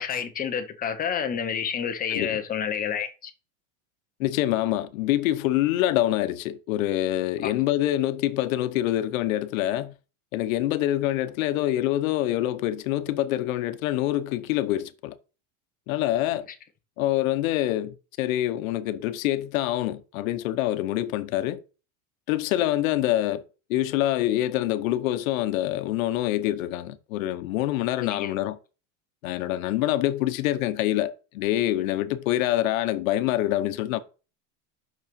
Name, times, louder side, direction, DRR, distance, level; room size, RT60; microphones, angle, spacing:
voice 1, 0.0-3.3 7.4-7.5 28.0-28.3, left 8 dB, 20° left, 0.8 m, -29 dB
voice 2, 2.1-2.4 4.2-9.9 10.3-15.2 15.9-16.5 17.0-21.6 22.3-23.4 23.7-28.6 29.2-34.0, left 14 dB, 85° left, 0.9 m, -25 dB
6.1 x 5.5 x 5.2 m
supercardioid pair, 155°, 40 cm